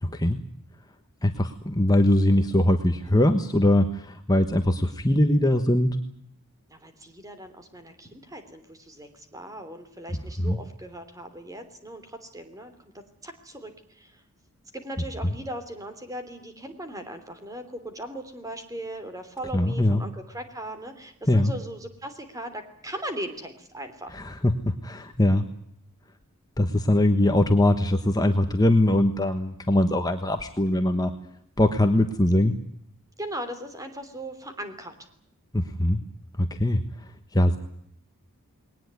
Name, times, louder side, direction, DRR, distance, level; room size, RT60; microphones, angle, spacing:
voice 1, 0.0-0.4 1.2-5.9 10.4-10.6 19.5-20.0 21.3-21.5 24.1-24.5 24.8-25.4 26.6-31.1 31.6-32.5 35.5-36.0 36.4-37.6, left 1 dB, 15° left, 6 dB, 1.3 m, -22 dB
voice 2, 6.7-14.2 14.7-24.1 33.2-34.9, right 1 dB, 15° right, 8 dB, 3.2 m, -38 dB
21.0 x 19.0 x 9.6 m, 0.70 s
head